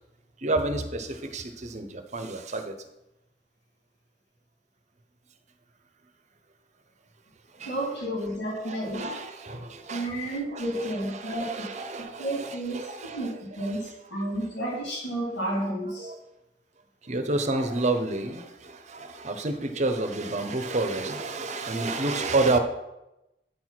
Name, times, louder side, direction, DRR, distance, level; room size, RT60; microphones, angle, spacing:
voice 1, 0.4-2.7 7.5-7.7 8.6-13.3 13.6-13.8 16.0-16.2 17.0-22.6, right 2 dB, 40° right, 8 dB, 0.8 m, -30 dB
voice 2, 7.6-9.1 9.9-11.7 12.2-12.8 13.1-16.1, right 1 dB, 70° left, -5 dB, 3.2 m, -31 dB
8.9 x 4.6 x 5.9 m, 0.92 s
head